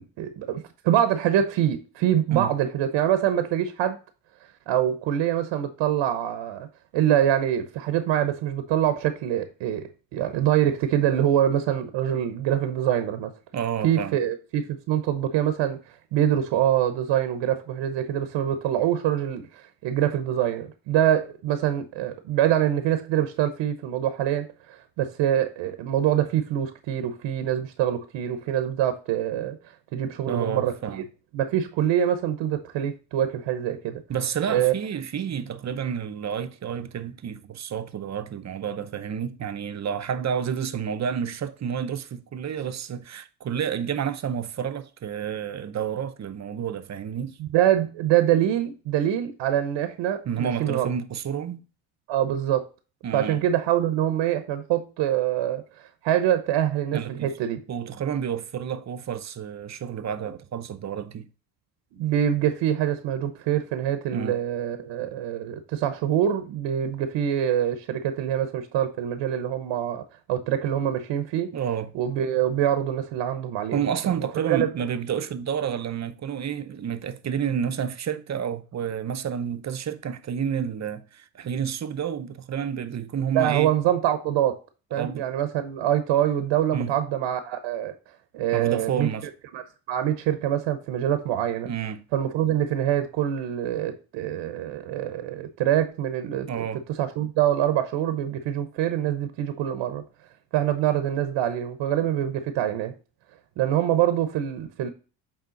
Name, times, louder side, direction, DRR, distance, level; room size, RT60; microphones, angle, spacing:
voice 1, 0.0-4.0 4.7-6.7 6.9-13.3 13.8-15.8 16.1-29.6 29.9-31.0 31.3-34.0 34.5-34.7 47.4-50.9 52.1-52.7 53.1-55.6 56.0-57.6 61.9-71.5 71.9-74.7 83.3-84.6 84.9-87.9 88.3-89.1 89.5-89.6 89.9-91.7 92.1-96.7 97.0-100.0 100.5-102.9 103.6-104.9, right 11 dB, 75° right, 1.0 m, -25 dB
voice 2, 13.5-14.2 30.2-31.0 34.1-47.4 50.2-51.6 53.0-53.4 56.9-57.3 57.7-61.3 64.1-64.4 71.5-71.9 73.7-83.7 85.0-85.3 86.7-87.0 88.5-89.3 91.6-92.1 96.5-96.8, right 8 dB, 35° right, 0.8 m, -30 dB
8.3 x 3.6 x 3.9 m
cardioid pair, 95°, 45 cm